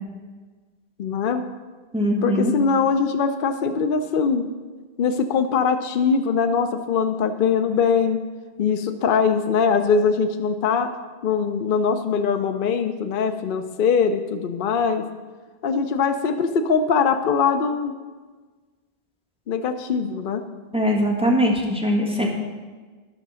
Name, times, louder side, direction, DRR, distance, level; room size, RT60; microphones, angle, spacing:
voice 1, 1.0-1.4 2.2-4.5 5.0-8.2 8.6-10.9 11.2-15.0 15.6-17.9 19.5-20.4, left 5 dB, 60° left, 7 dB, 0.7 m, -22 dB
voice 2, 1.9-2.5 20.7-22.3, equal, 5° right, -2 dB, 1.6 m, -21 dB
11.0 x 5.9 x 6.2 m, 1.4 s
omnidirectional pair, 1.1 m